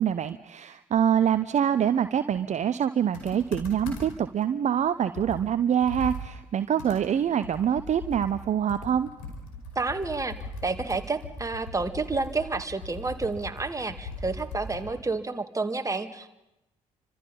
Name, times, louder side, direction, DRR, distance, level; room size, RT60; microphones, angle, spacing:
voice 1, 0.0-9.1, right 9 dB, 45° right, 12 dB, 0.9 m, -25 dB
Computer keyboard, 3.1-4.3 4.7-4.8 5.1-15.0, left 2 dB, 75° left, 5.3 m, -39 dB
voice 2, 9.8-10.4 10.6-16.3, right 3 dB, 20° right, 7 dB, 2.3 m, -30 dB
30.0 x 25.5 x 5.6 m, 0.91 s
figure-of-eight pair, 45°, 17 cm